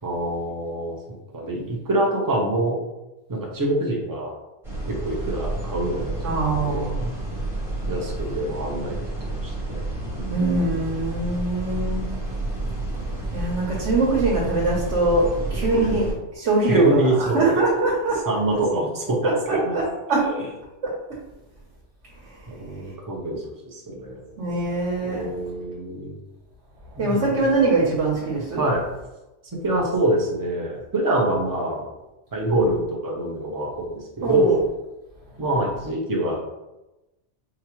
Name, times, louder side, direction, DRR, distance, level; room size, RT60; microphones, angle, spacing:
voice 1, 0.0-2.8 3.3-4.3 4.9-6.9 7.9-9.0 9.4-9.8 10.1-10.4 15.7-16.1 16.6-17.6 18.2-19.8 20.2-20.3 22.5-23.4 23.7-24.2 25.0-26.2 27.0-27.4 28.6-28.8 29.5-31.8 32.3-34.6 35.4-36.4, right 1 dB, 20° right, -2 dB, 0.6 m, -25 dB
sound 1, 4.6-16.1, right 2 dB, ahead, 1.0 m, -30 dB
voice 2, 6.2-7.1 10.3-12.1 13.3-16.1 16.4-17.0 17.3-18.2 19.5-19.8 20.1-20.2 24.4-25.2 27.0-28.6 34.2-34.6, right 2 dB, 85° right, -4 dB, 1.2 m, -22 dB
4.9 x 2.3 x 3.0 m, 0.99 s
omnidirectional pair, 1.2 m